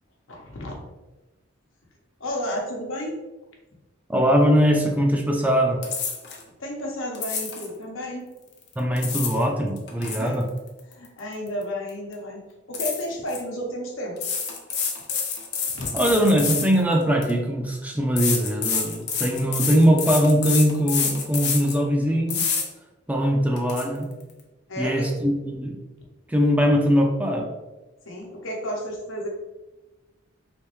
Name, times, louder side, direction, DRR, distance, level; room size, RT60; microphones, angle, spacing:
voice 1, 0.3-0.7 2.2-3.1 6.6-8.3 10.2-10.4 10.9-12.4 12.7-14.3 15.7-16.0 24.7-25.1 28.0-29.3, equal, 90° left, -1 dB, 0.9 m, -32 dB
voice 2, 4.1-5.8 8.8-10.4 15.9-22.5 23.1-24.1 24.8-25.8 26.3-27.5, equal, 10° right, 2 dB, 0.4 m, -21 dB
sound 1, 5.8-6.4 7.1-7.7 8.7-9.4 9.8-11.6 11.9-12.1 12.7-13.4 14.2-17.3 18.2-21.8 22.3-22.6 23.1-23.2 23.6-23.8, left 6 dB, 60° left, 0.7 m, -28 dB
3.4 x 3.1 x 3.1 m, 1.1 s
head